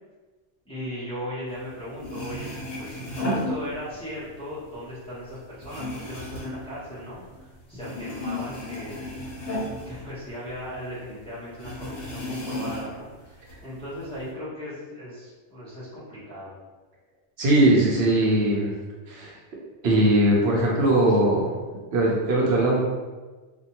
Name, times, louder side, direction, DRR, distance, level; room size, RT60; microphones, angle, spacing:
voice 1, 0.7-2.5 2.8-9.1 9.9-16.5, equal, 5° left, -11 dB, 0.7 m, -37 dB
sound 1, 1.7-1.8 2.0-4.2 4.6-7.5 7.8-10.8 11.0-11.1 11.6-13.1 13.5-14.2, left 1 dB, 65° left, 1.0 m, -34 dB
voice 2, 17.4-18.7 19.1-19.4 19.8-21.5 21.9-22.8, right 1 dB, 70° right, -4 dB, 0.8 m, -20 dB
2.5 x 2.2 x 2.8 m, 1.3 s
omnidirectional pair, 1.1 m